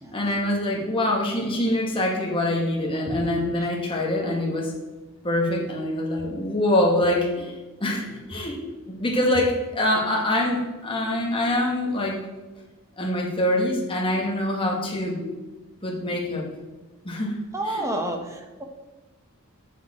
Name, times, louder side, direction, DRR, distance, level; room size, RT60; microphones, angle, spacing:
voice 1, 0.1-4.7 5.2-8.6 8.9-12.2 13.0-15.2 15.8-16.5 17.0-17.4 17.7-17.8, left 1 dB, 25° left, -1 dB, 1.6 m, -24 dB
voice 2, 17.5-18.6, right 1 dB, 15° right, 4 dB, 1.0 m, -30 dB
9.2 x 6.7 x 4.2 m, 1.2 s
head